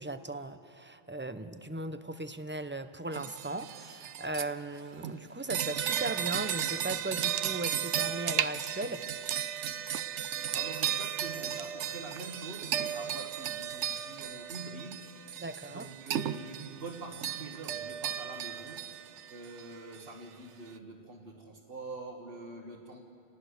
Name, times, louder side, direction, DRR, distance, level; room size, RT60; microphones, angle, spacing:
voice 1, 0.0-9.0 15.4-15.9, right 2 dB, 15° right, 10 dB, 0.5 m, -37 dB
sound 1, 3.1-4.4 5.0-20.0, right 10 dB, 80° right, 1.0 m, -35 dB
voice 2, 10.5-15.4 15.7-19.0 19.3-23.0, right 3 dB, 55° right, -2 dB, 1.7 m, -45 dB
28.0 x 19.5 x 6.5 m, 2.5 s
omnidirectional pair, 1.2 m